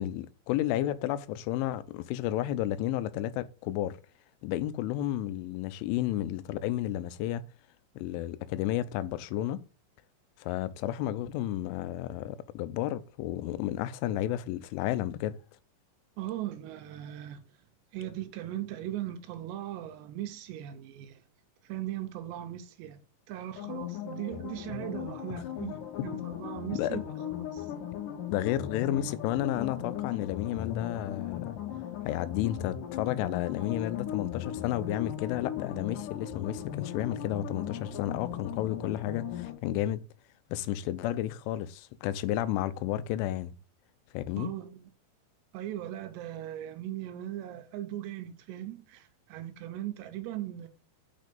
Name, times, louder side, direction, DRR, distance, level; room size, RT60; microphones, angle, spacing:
voice 1, 0.0-4.0 4.4-7.5 8.0-9.6 10.4-15.4 26.8-27.0 28.3-31.6 32.1-40.0 40.5-43.5 44.1-44.5, left 13 dB, 85° left, 3.1 m, -32 dB
voice 2, 16.2-17.4 17.9-21.2 21.6-23.0 23.3-27.0 27.3-27.7 44.4-44.9 45.5-50.7, right 13 dB, 75° right, 2.8 m, -38 dB
sound 1, 23.6-39.5, left 10 dB, 60° left, 2.5 m, -38 dB
6.5 x 6.5 x 5.2 m
omnidirectional pair, 5.5 m